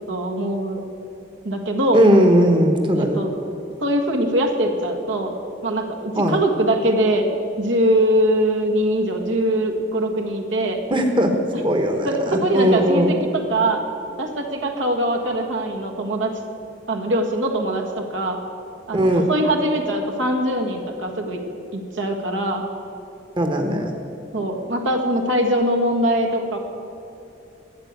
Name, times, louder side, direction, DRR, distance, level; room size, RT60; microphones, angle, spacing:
voice 1, 0.1-0.8 1.4-2.0 3.0-3.4 3.8-5.3 5.6-7.3 7.6-10.8 11.5-11.6 12.0-13.8 14.2-16.3 16.9-18.4 18.9-21.4 21.7-22.6 24.3-26.6, right 1 dB, 80° right, 3 dB, 1.6 m, -22 dB
voice 2, 1.9-3.2 6.2-6.4 10.9-11.3 11.6-13.1 18.9-19.3 23.4-24.0, equal, 25° right, 4 dB, 1.1 m, -18 dB
13.0 x 8.9 x 8.2 m, 2.7 s
head